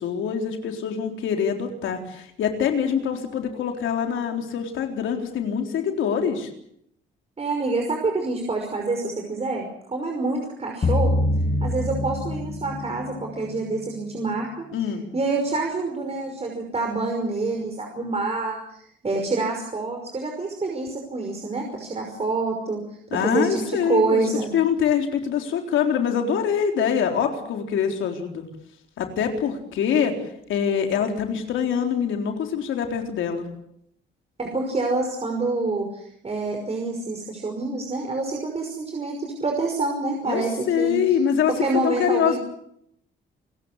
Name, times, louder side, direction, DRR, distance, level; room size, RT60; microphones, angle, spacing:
voice 1, 0.0-6.5 14.7-15.1 23.1-24.2 24.5-28.4 29.0-30.1 30.5-33.5 40.3-41.5 41.8-42.4, left 7 dB, 80° left, 4 dB, 4.0 m, -24 dB
voice 2, 7.4-11.2 11.6-14.6 15.1-22.8 23.1-24.5 34.4-41.0 41.5-42.4, right 3 dB, 30° right, 2 dB, 5.6 m, -27 dB
sound 1, 10.8-13.2, left 1 dB, 30° left, 1.4 m, -24 dB
29.0 x 15.0 x 8.2 m, 0.72 s
cardioid pair, 90°, 20 cm